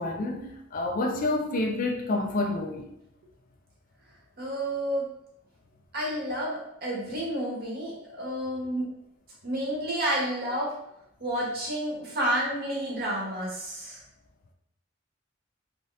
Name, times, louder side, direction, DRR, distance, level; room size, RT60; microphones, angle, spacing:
voice 1, 0.0-2.9, left 2 dB, 45° left, 0.4 m, -28 dB
voice 2, 4.4-5.0 5.9-8.9 9.4-10.7 11.2-14.0, right 1 dB, 50° right, 1.0 m, -30 dB
2.7 x 2.5 x 3.0 m
head